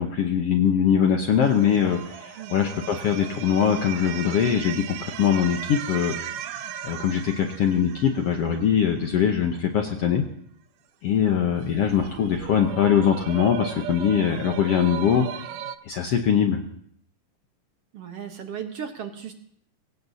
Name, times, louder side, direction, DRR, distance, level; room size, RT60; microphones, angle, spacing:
voice 1, 0.0-6.1 6.8-10.3 11.0-15.3 15.8-16.6, left 8 dB, 70° left, 4 dB, 1.5 m, -22 dB
sound 1, 1.4-9.3 11.7-15.8, right 10 dB, 80° right, 1.5 m, -37 dB
voice 2, 17.9-19.3, right 8 dB, 60° right, 5 dB, 1.7 m, -36 dB
23.0 x 17.5 x 2.8 m, 0.65 s
omnidirectional pair, 3.9 m